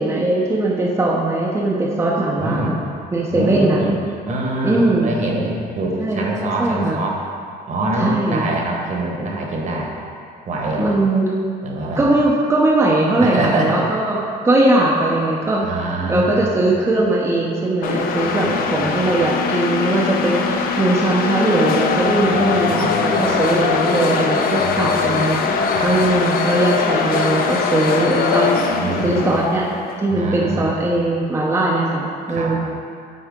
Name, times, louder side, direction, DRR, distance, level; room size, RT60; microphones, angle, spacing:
voice 1, 0.0-2.8 3.1-3.8 4.6-5.1 6.0-6.2 6.6-7.0 8.0-8.5 10.8-11.3 12.0-15.7 16.1-25.4 25.8-28.5 29.0-29.6 30.0-32.6, right 2 dB, 15° right, -4 dB, 0.7 m, -19 dB
voice 2, 2.4-2.7 3.3-4.0 4.2-7.2 7.7-9.9 10.5-10.9 11.6-12.2 13.2-13.8 15.6-16.7 18.2-19.1 22.1-23.6 24.6-24.9 25.6-25.9 28.7-29.5 30.1-30.7 32.3-32.5, right 2 dB, 45° right, -1 dB, 1.2 m, -25 dB
sound 1, 17.8-30.1, left 5 dB, 60° left, 0.5 m, -21 dB
8.1 x 4.3 x 3.7 m, 2.4 s
cardioid pair, 110°, 17 cm